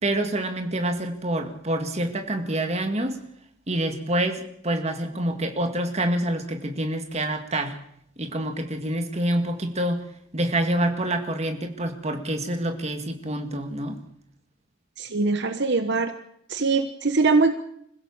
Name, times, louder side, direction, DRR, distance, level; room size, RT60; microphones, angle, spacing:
voice 1, 0.0-3.2 3.7-7.8 8.2-10.0 10.3-14.0, right 1 dB, 30° right, 6 dB, 2.0 m, -27 dB
voice 2, 15.0-16.1 16.5-17.5, right 3 dB, 55° right, 8 dB, 1.1 m, -22 dB
25.5 x 16.0 x 7.3 m, 0.74 s
head